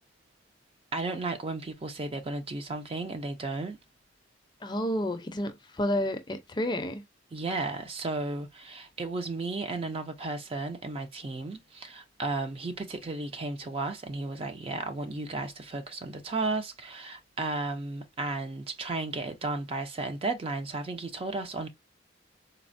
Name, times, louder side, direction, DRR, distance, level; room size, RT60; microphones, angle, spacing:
voice 1, 0.9-3.8 7.3-21.7, right 3 dB, 30° right, 0.4 m, -34 dB
voice 2, 4.6-7.0, left 1 dB, 25° left, 0.5 m, -30 dB
4.1 x 2.0 x 2.5 m
head